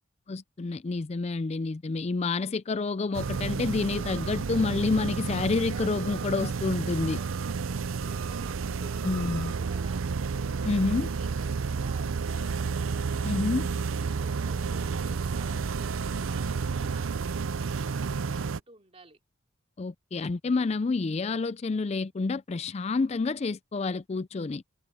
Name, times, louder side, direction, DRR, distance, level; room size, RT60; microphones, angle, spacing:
voice 1, 0.3-7.2 9.0-9.5 10.7-11.1 13.2-13.7 19.8-24.6, left 3 dB, 30° left, 0.4 m, -28 dB
sound 1, 3.1-18.6, right 5 dB, 90° right, 0.5 m, -31 dB
voice 2, 7.5-10.1 10.6-12.6 13.8-19.2, right 2 dB, 30° right, 3.2 m, -54 dB
head